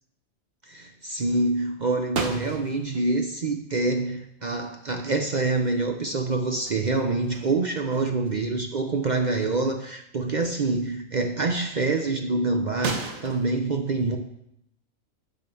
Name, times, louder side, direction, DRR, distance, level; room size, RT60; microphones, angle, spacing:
voice 1, 0.6-14.2, right 3 dB, 50° right, 5 dB, 0.6 m, -26 dB
sound 1, 2.1-3.0 4.8-5.0 5.4-6.2 6.5-8.4 8.8-9.0 9.7-9.8 12.8-13.5, right 4 dB, 80° right, 1.5 m, -35 dB
10.5 x 3.8 x 6.8 m, 0.78 s
omnidirectional pair, 1.4 m